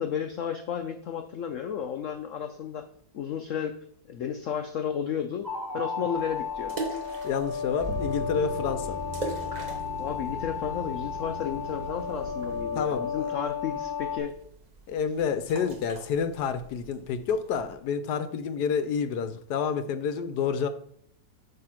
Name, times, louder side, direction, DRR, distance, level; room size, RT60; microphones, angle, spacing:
voice 1, 0.0-2.9 3.1-3.8 4.1-5.5 5.7-6.8 10.0-14.3, left 8 dB, 85° left, 0.6 m, -32 dB
sound 1, 5.4-14.2, left 6 dB, 15° left, 0.9 m, -34 dB
sound 2, 6.1-17.7, right 2 dB, 60° right, 0.4 m, -43 dB
sound 3, 7.0-12.6, right 2 dB, 35° right, 2.0 m, -39 dB
voice 2, 7.2-9.0 12.7-13.3 14.9-20.7, left 6 dB, 70° left, 1.1 m, -29 dB
8.6 x 3.5 x 5.8 m
omnidirectional pair, 2.0 m